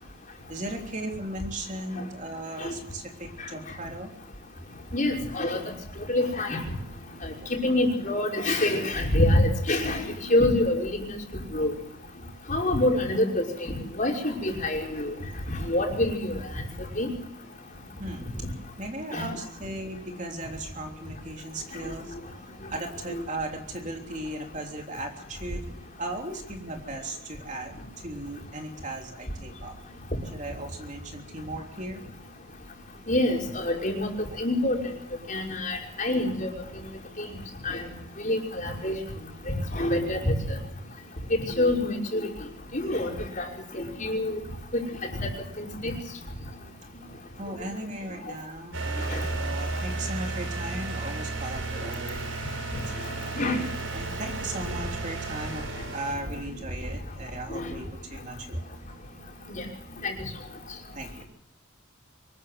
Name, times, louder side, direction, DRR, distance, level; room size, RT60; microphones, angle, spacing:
voice 1, 0.5-4.1 7.4-7.5 18.0-18.4 18.8-22.2 22.7-29.8 30.3-32.0 47.4-52.7 53.1-53.4 53.9-58.7 60.9-61.2, right 1 dB, 35° right, 2 dB, 3.4 m, -37 dB
voice 2, 4.9-5.6 6.0-6.6 7.2-11.2 11.5-11.8 12.5-15.1 15.6-16.3 17.0-17.1 19.1-19.2 23.1-23.2 33.1-34.1 34.4-34.8 35.3-36.5 37.2-37.3 37.6-37.8 38.2-39.0 39.5-40.4 41.6-42.3 42.7-43.5 43.7-44.4 44.7-45.9 49.1-49.2 53.4-53.6 57.5-57.7 59.6-59.7 60.0-60.2, left 1 dB, 35° left, 0 dB, 5.7 m, -26 dB
sound 1, 48.7-56.1, right 3 dB, 65° right, 6.1 m, -33 dB
25.0 x 14.0 x 8.0 m, 0.73 s
head